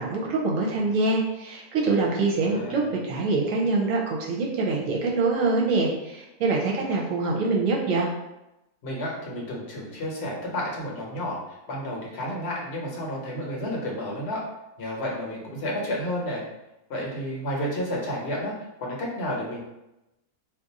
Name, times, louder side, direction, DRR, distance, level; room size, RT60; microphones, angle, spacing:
voice 1, 0.0-8.1, right 3 dB, 65° right, -2 dB, 1.0 m, -25 dB
voice 2, 2.4-3.0 8.8-14.4 14.8-16.4 16.9-18.5 18.8-19.6, equal, 50° left, -2 dB, 1.0 m, -31 dB
2.5 x 2.4 x 4.0 m, 0.93 s
omnidirectional pair, 1.6 m